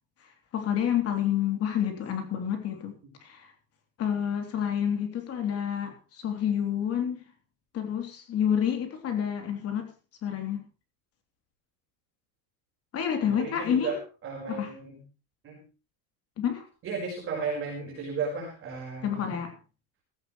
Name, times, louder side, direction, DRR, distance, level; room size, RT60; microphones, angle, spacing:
voice 1, 0.5-2.9 3.2-3.5 4.0-5.9 6.2-7.2 7.7-9.9 10.2-10.6 12.9-13.9 14.5-14.7 16.4-16.6 19.0-19.5, left 9 dB, 35° left, 6 dB, 3.4 m, -28 dB
voice 2, 13.2-15.0 15.4-15.6 16.8-19.3, right 4 dB, 30° right, -2 dB, 4.9 m, -34 dB
16.0 x 15.5 x 3.2 m, 0.31 s
cardioid pair, 160°, 42 cm